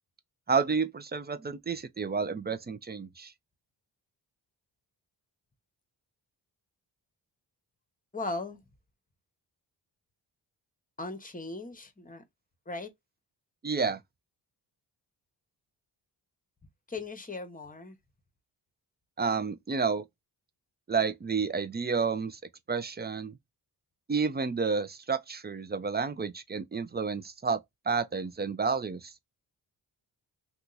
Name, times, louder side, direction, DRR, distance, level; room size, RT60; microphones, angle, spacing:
voice 1, 0.5-3.3 13.6-14.0 19.2-20.1 20.9-22.4 22.7-23.4 24.1-27.6 27.9-29.1, right 5 dB, 20° right, 0.5 m, -30 dB
voice 2, 8.1-8.6 11.0-12.2 12.7-12.9 16.9-18.0, left 3 dB, 20° left, 1.0 m, -38 dB
2.8 x 2.4 x 3.9 m
cardioid pair, 60°, 45 cm